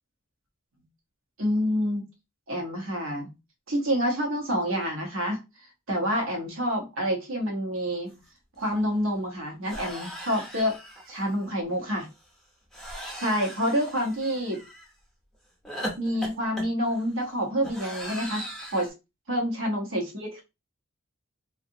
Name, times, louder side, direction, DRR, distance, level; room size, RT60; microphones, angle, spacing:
voice 1, 1.4-2.0 2.5-3.3 3.7-5.4 5.9-8.2 8.6-10.8 11.1-12.1 13.2-14.6 16.0-18.5 18.7-18.9 19.3-20.4, equal, 70° right, 1 dB, 1.0 m, -27 dB
sound 1, 8.2-8.3 8.6-8.8 9.6-11.3 12.7-14.9 15.6-18.9, equal, ahead, 0.6 m, -39 dB
2.7 x 2.5 x 2.6 m, 0.25 s
head